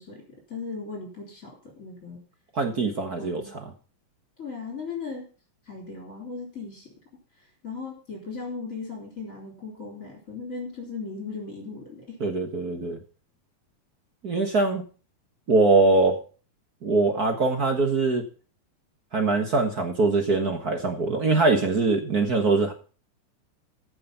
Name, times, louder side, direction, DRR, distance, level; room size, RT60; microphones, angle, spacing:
voice 1, 0.0-2.2 3.2-3.5 4.4-5.2 5.6-6.9 7.4-12.2, left 4 dB, 25° left, 0 dB, 3.8 m, -37 dB
voice 2, 2.5-3.4 12.2-13.0 14.2-14.8 15.5-16.1 16.8-18.2 19.1-22.7, right 3 dB, 45° right, 5 dB, 1.4 m, -22 dB
14.5 x 6.7 x 5.7 m, 0.37 s
omnidirectional pair, 3.4 m